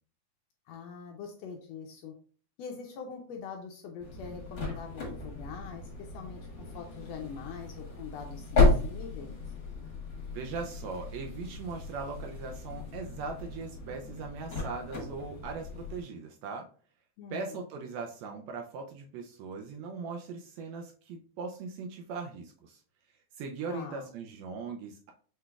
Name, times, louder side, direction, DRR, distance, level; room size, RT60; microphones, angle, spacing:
voice 1, 0.7-2.1 2.6-6.4 6.7-9.4 17.2-17.6 23.7-24.1, left 6 dB, 80° left, 3 dB, 1.6 m, -43 dB
sound 1, 4.0-16.0, left 3 dB, 50° left, 1.9 m, -33 dB
voice 2, 10.3-16.7 17.3-22.8 23.4-25.1, right 4 dB, 80° right, 3 dB, 1.6 m, -39 dB
5.8 x 3.2 x 2.3 m, 0.43 s
omnidirectional pair, 3.4 m